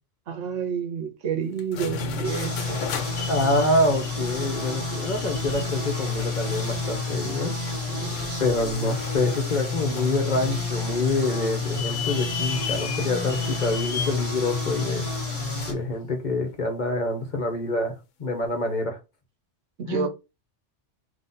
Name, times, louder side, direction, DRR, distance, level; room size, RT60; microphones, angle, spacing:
voice 1, 0.3-2.9 7.7-8.4 15.4-15.7 19.8-20.1, right 7 dB, 80° right, 1.3 m, -30 dB
sound 1, 1.6-15.8, left 7 dB, 85° left, 1.1 m, -30 dB
sound 2, 2.2-15.7, right 2 dB, 10° left, 1.3 m, -34 dB
voice 2, 3.3-7.6 8.4-15.1 15.7-17.9 18.2-19.0 19.9-20.1, left 2 dB, 40° left, 1.0 m, -26 dB
4.0 x 2.9 x 4.0 m
omnidirectional pair, 1.3 m